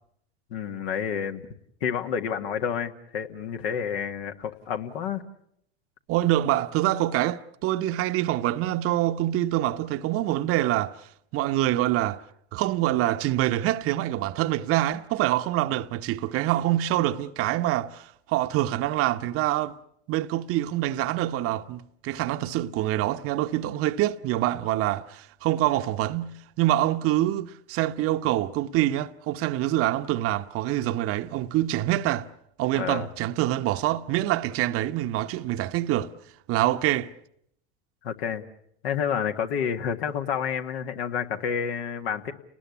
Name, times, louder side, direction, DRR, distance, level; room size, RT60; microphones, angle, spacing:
voice 1, 0.5-1.4 1.8-5.3 32.7-33.1 38.0-38.4 38.8-42.3, left 7 dB, 65° left, 1.9 m, -29 dB
voice 2, 6.1-11.0 11.3-12.2 12.5-19.7 20.1-32.3 32.6-36.1 36.5-37.1, right 14 dB, 45° right, 0.9 m, -25 dB
30.0 x 19.5 x 8.4 m
hypercardioid pair, 90°, 33 cm